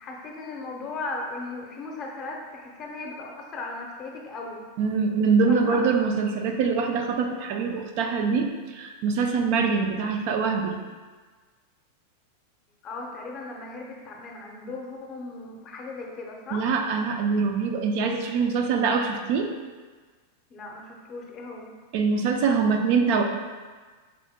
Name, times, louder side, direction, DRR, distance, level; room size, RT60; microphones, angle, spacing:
voice 1, 0.0-4.6 5.5-5.8 12.8-16.7 20.5-21.7, left 3 dB, 30° left, 0 dB, 0.6 m, -37 dB
voice 2, 4.8-8.5 8.7-10.8 16.5-19.5 21.9-23.2, right 5 dB, 50° right, 4 dB, 0.3 m, -24 dB
4.7 x 2.1 x 3.5 m, 1.4 s
supercardioid pair, 145°, 0 cm